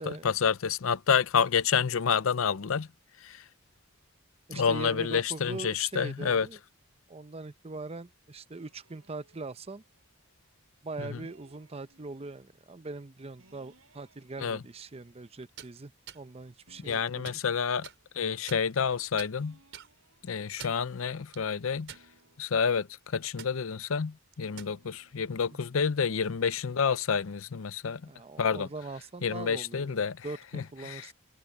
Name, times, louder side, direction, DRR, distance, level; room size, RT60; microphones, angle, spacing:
voice 1, 0.0-2.9 3.2-3.4 4.5-6.5 11.0-11.2 14.4-14.6 16.8-17.9 18.1-19.6 20.2-21.9 22.4-28.0 28.4-28.7 29.2-30.3 30.5-31.1, left 6 dB, 75° left, 0.6 m, -29 dB
voice 2, 4.5-6.6 7.1-9.8 10.8-17.4 28.0-31.1, right 3 dB, 30° right, 0.7 m, -42 dB
sound 1, 8.5-10.7 11.2-12.6 13.4-16.3 16.7-19.0 19.3-21.4 21.8-23.8 24.4-25.6, right 2 dB, 80° right, 7.5 m, -66 dB
sound 2, 15.4-15.7 16.1-16.2 16.8-17.4 17.8-18.0 18.5-18.9 19.2-19.3 19.7-19.9 20.4-20.9 21.3-21.4 21.9-22.4 22.8-23.0 23.4-23.5 24.3-24.8, right 8 dB, 60° right, 4.8 m, -46 dB
head